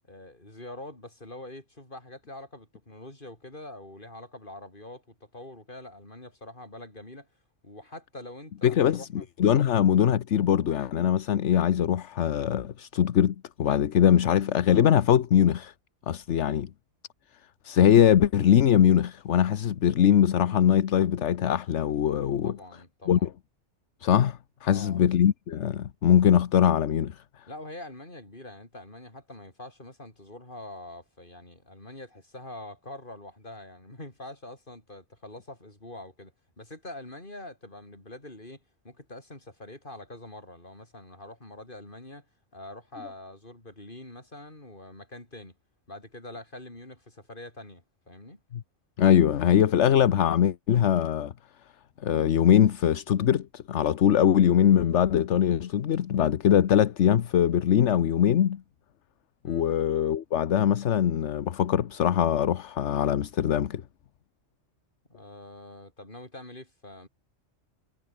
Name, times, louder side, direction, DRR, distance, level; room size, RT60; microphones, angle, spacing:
voice 1, 0.1-7.3 7.6-9.3 9.5-9.7 22.4-23.3 24.6-25.1 27.5-42.3 42.5-45.5 45.9-48.4 59.4-59.7 65.1-67.1, left 1 dB, 45° left, 5.4 m, -44 dB
voice 2, 8.6-15.7 16.1-16.7 17.6-22.5 23.1-23.3 24.0-27.2 48.5-48.6 49.0-51.3 52.0-58.6 59.4-63.8, left 9 dB, 75° left, 1.2 m, -22 dB
omnidirectional pair, 1.2 m